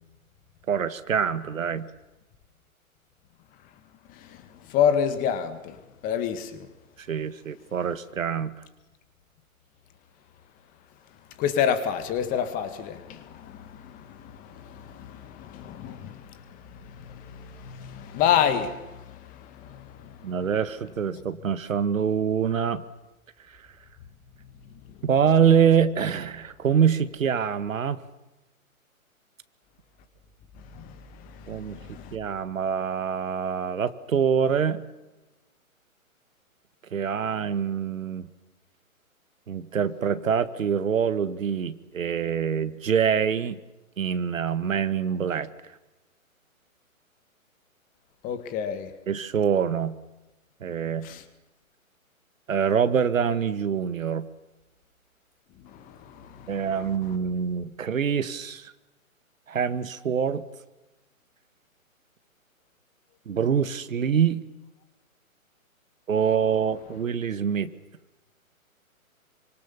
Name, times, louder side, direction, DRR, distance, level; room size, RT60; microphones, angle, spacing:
voice 1, 0.7-1.9 7.0-8.5 20.2-22.8 23.5-23.6 25.0-28.0 31.5-34.8 36.9-38.3 39.5-43.6 44.0-45.5 49.1-50.0 50.6-51.1 52.5-54.3 56.5-58.7 59.5-60.4 63.3-64.4 66.1-67.7, right 7 dB, 65° right, 13 dB, 1.9 m, -25 dB
voice 2, 4.7-5.8 6.0-6.7 11.4-16.4 16.8-19.4 19.7-19.9 30.7-30.9 31.4-32.2 48.2-48.9 51.0-51.2 55.7-56.5, left 8 dB, 20° left, 10 dB, 2.0 m, -28 dB
27.0 x 25.0 x 7.2 m, 1.0 s
hypercardioid pair, 140°, 42 cm